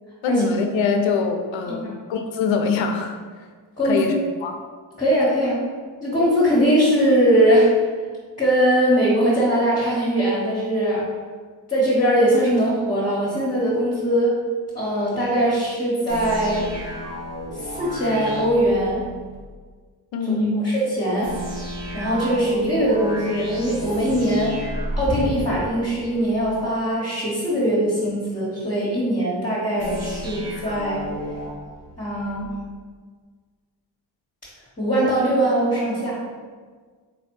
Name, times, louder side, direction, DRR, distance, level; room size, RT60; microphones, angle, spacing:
voice 1, 0.2-3.2 3.8-4.1 4.4-4.6 20.1-20.7, left 4 dB, 70° left, 5 dB, 0.6 m, -23 dB
voice 2, 3.8-4.2 5.0-5.6 6.0-7.8 8.4-11.0 11.7-14.4 14.7-16.7 17.6-19.1 20.4-21.3 21.9-24.6 25.0-31.1 32.0-32.6 34.8-36.2, equal, 15° left, -9 dB, 1.4 m, -21 dB
sound 1, 16.1-19.4 21.2-26.4 29.8-32.4, equal, 60° right, 1.5 m, -32 dB
3.6 x 3.2 x 3.1 m, 1.5 s
supercardioid pair, 40°, 48 cm